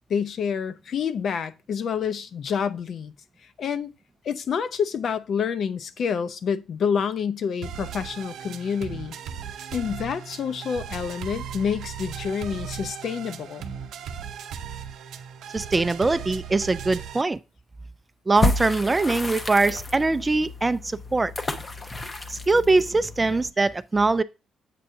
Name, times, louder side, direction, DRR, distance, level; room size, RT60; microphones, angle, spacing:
voice 1, 0.1-3.1 3.6-3.9 4.2-9.2 9.7-13.6, left 7 dB, 60° left, 0.5 m, -28 dB
sound 1, 7.6-17.2, right 8 dB, 75° right, 0.6 m, -37 dB
voice 2, 15.5-17.4 18.3-21.3 22.3-24.2, right 3 dB, 20° right, 0.3 m, -22 dB
sound 2, 18.3-23.5, left 2 dB, 25° left, 0.8 m, -30 dB
7.5 x 2.7 x 5.5 m
cardioid pair, 90°, 0 cm